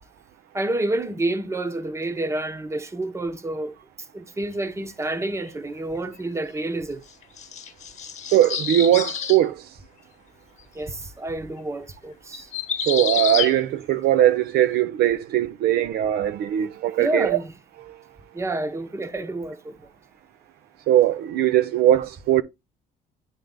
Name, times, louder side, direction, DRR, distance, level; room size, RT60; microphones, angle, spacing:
voice 1, 0.5-3.7 4.1-7.0 10.7-12.5 17.0-17.5 18.3-19.7, right 2 dB, 15° right, 0.9 m, -28 dB
sound 1, 5.1-5.5 7.2-9.4 12.3-13.5, left 7 dB, 45° left, 1.1 m, -29 dB
voice 2, 8.3-9.6 12.9-17.4 17.9-18.0 20.9-22.4, right 12 dB, 70° right, 0.5 m, -20 dB
9.6 x 3.3 x 3.8 m
cardioid pair, 110°, 17 cm